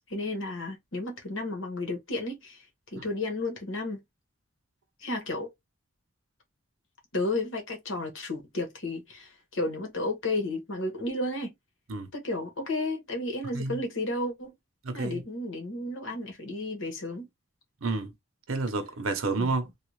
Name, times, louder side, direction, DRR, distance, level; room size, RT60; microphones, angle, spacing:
voice 1, 0.1-2.6 2.9-4.0 5.0-5.5 7.1-11.5 12.1-14.5 14.9-17.3 19.4-19.5, left 2 dB, 70° left, 1.3 m, -32 dB
voice 2, 14.8-15.2 17.8-18.1 18.5-19.7, right 3 dB, 90° right, 0.7 m, -30 dB
3.4 x 2.4 x 3.1 m
head